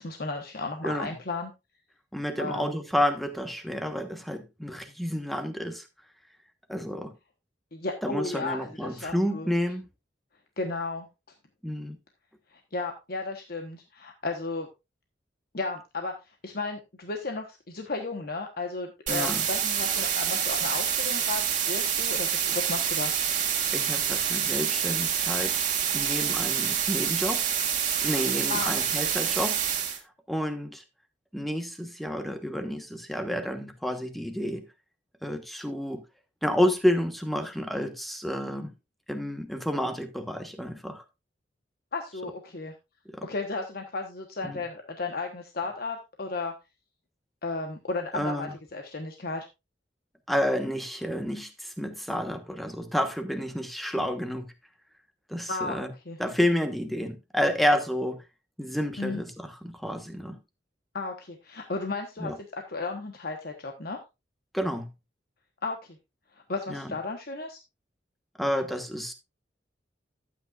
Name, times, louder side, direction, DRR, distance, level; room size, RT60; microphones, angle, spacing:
voice 1, 0.0-1.5 2.4-2.8 7.7-9.5 10.6-11.1 12.5-14.7 15.5-16.1 16.4-23.1 28.5-29.1 41.9-42.7 43.2-46.5 47.4-49.5 55.5-55.8 56.1-56.2 59.0-59.2 60.9-64.0 65.6-66.0 66.5-67.6, left 3 dB, 55° left, 1.1 m, -34 dB
voice 2, 2.1-5.8 6.7-7.1 8.0-9.8 11.6-12.0 19.1-19.5 23.7-25.5 25.9-27.4 28.0-29.9 30.3-30.8 31.3-34.7 35.2-36.0 36.4-38.7 39.1-41.0 43.1-43.3 44.4-44.6 48.1-48.5 50.3-54.5 55.3-55.9 56.2-58.2 58.6-60.4 62.2-62.4 64.5-64.9 66.7-66.9 68.4-69.1, equal, ahead, 1.2 m, -30 dB
sound 1, 19.1-30.0, right 8 dB, 45° right, 2.5 m, -27 dB
12.0 x 8.4 x 2.4 m
head